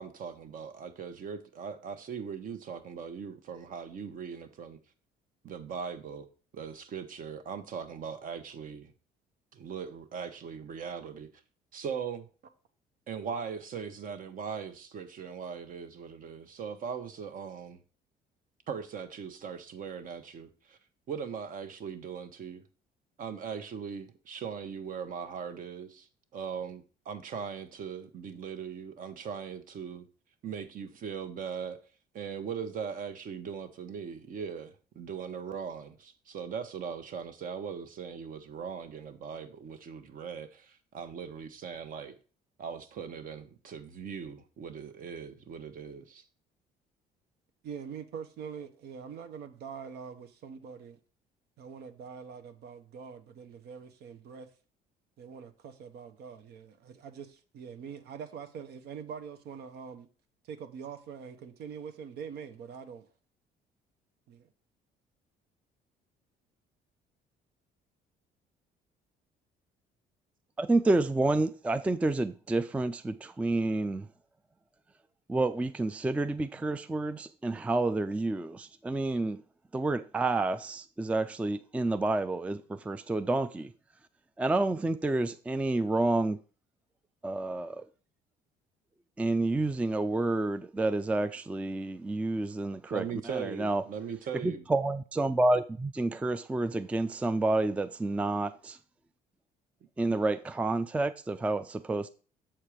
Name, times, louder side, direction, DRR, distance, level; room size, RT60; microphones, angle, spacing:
voice 1, 0.0-4.8 5.4-6.3 6.5-8.9 9.5-11.3 11.7-12.3 13.1-17.8 18.7-20.8 21.1-22.6 23.2-26.1 26.3-30.1 30.4-31.8 32.1-42.1 42.6-46.2 92.8-94.6 100.1-100.2, right 6 dB, 55° right, 1.0 m, -39 dB
voice 2, 47.6-51.0 51.6-54.5 55.2-60.1 60.4-63.1 64.3-64.5, right 7 dB, 75° right, 0.9 m, -44 dB
voice 3, 70.6-74.1 75.3-79.4 79.7-83.7 84.4-86.4 87.2-87.8 89.2-93.8 94.4-98.8 100.0-102.1, right 2 dB, 10° right, 0.3 m, -29 dB
7.3 x 4.5 x 4.9 m
cardioid pair, 110°, 17 cm